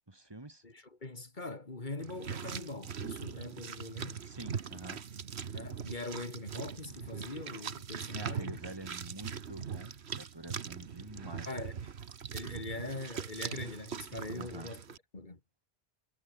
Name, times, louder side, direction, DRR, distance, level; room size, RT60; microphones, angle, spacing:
voice 1, 0.1-0.6 4.2-5.0 8.1-11.7 14.3-14.7, right 2 dB, 20° right, 2.0 m, -47 dB
voice 2, 0.6-4.2 5.5-8.6 11.4-11.8 12.3-14.8 15.1-15.4, left 2 dB, 45° left, 2.8 m, -42 dB
sound 1, 2.0-15.0, right 7 dB, 70° right, 1.4 m, -41 dB
omnidirectional pair, 1.1 m